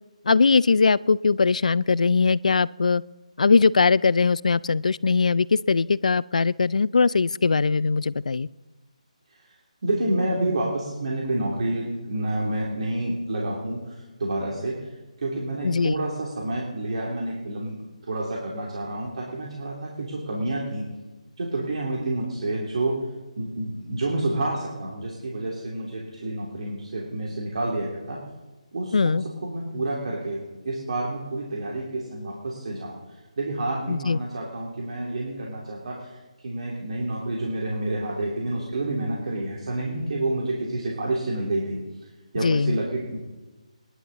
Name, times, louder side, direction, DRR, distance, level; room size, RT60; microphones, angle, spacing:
voice 1, 0.3-3.0 3.4-8.5 15.6-15.9 28.9-29.2 33.9-34.2 42.4-42.8, left 4 dB, 75° left, 21 dB, 0.4 m, -20 dB
voice 2, 9.8-14.9 15.2-17.8 18.0-20.9 21.4-23.0 23.4-28.2 28.7-36.2 36.4-41.8 42.3-43.2, right 2 dB, 60° right, -3 dB, 3.1 m, -29 dB
25.5 x 11.5 x 4.1 m, 1.2 s
figure-of-eight pair, 160°, 4 cm